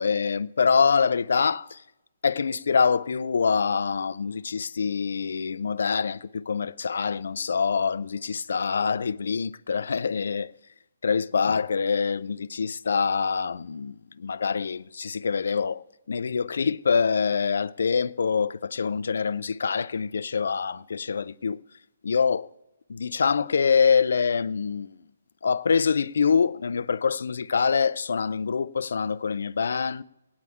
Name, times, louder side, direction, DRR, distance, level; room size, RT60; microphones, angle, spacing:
voice 1, 0.0-1.8 2.2-10.5 11.0-21.6 22.0-22.5 22.9-25.0 25.4-30.0, left 5 dB, 70° left, 0.4 m, -25 dB
17.5 x 9.6 x 3.5 m
hypercardioid pair, 170°, 0 cm